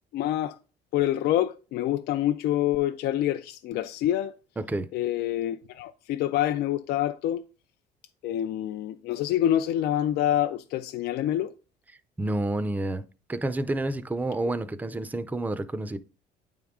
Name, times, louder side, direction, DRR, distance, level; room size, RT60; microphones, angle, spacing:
voice 1, 0.1-0.6 0.9-4.3 4.9-7.4 8.2-11.5, left 12 dB, 70° left, 0.4 m, -26 dB
voice 2, 4.6-4.9 12.2-13.0 13.3-16.0, right 2 dB, 10° right, 0.4 m, -29 dB
9.0 x 3.6 x 3.6 m
cardioid pair, 110°, 17 cm